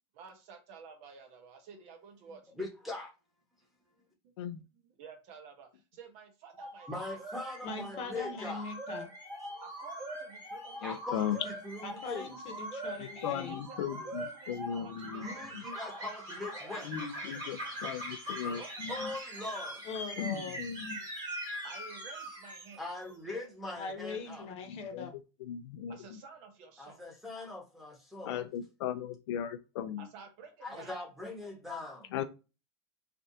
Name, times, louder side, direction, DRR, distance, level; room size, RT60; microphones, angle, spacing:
voice 1, 0.1-2.4 5.0-7.3 9.6-11.0 13.5-15.5 18.5-19.2 21.6-23.0 25.9-27.0 30.0-31.0, right 5 dB, 50° right, 0.9 m, -52 dB
voice 2, 2.6-3.1 6.9-8.6 10.8-12.3 15.2-16.9 18.9-19.8 22.8-24.5 26.8-28.4 30.6-32.1, left 2 dB, ahead, 1.3 m, -41 dB
sound 1, 6.5-23.1, right 1 dB, 30° right, 1.6 m, -42 dB
voice 3, 7.6-9.1 11.8-13.6 19.8-20.6 23.8-25.2, left 4 dB, 45° left, 0.9 m, -41 dB
voice 4, 10.8-11.4 13.0-15.6 16.8-19.1 20.2-21.0 24.7-25.1 25.4-26.2 28.2-30.1 32.1-32.2, left 9 dB, 75° left, 0.5 m, -37 dB
3.3 x 2.5 x 2.7 m
supercardioid pair, 130°, 15 cm